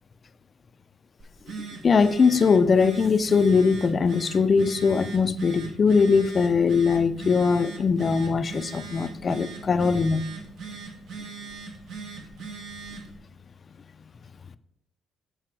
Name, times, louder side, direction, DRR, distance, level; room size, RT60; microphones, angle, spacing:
Telephone, 1.2-13.1, right 4 dB, 75° right, 1.4 m, -40 dB
voice 1, 1.8-10.2, left 5 dB, 40° left, 0.4 m, -21 dB
7.6 x 4.7 x 4.6 m
cardioid pair, 90°, 0 cm